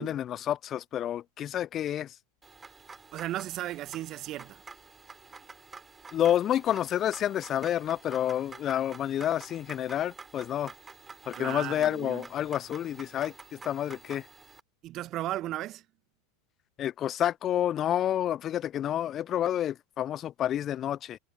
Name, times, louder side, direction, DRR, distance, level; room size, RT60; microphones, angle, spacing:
voice 1, 0.0-2.2 6.1-10.7 11.3-14.3 16.8-21.2, left 11 dB, 35° left, 0.4 m, -29 dB
sound 1, 2.4-14.6, right 4 dB, 15° right, 3.8 m, -49 dB
voice 2, 3.1-4.6 11.3-12.2 14.8-15.8, right 14 dB, 40° right, 1.2 m, -35 dB
figure-of-eight pair, 85°, 0 cm